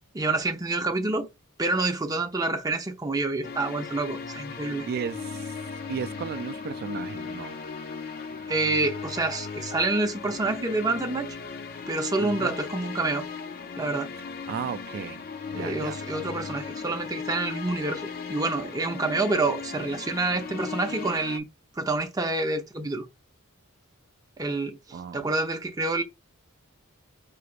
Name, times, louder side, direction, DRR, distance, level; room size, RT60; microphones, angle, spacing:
voice 1, 0.1-1.3 1.6-4.9 8.5-11.4 11.9-13.3 13.8-14.1 15.5-21.5 21.7-23.1 24.4-26.0, right 2 dB, 15° right, 0.7 m, -28 dB
sound 1, 3.4-21.4, left 5 dB, 45° left, 0.5 m, -37 dB
voice 2, 4.9-5.5 5.9-7.6 12.2-12.6 14.5-15.2 15.5-16.0 24.9-25.3, right 6 dB, 45° right, 0.3 m, -34 dB
4.8 x 3.2 x 2.5 m
head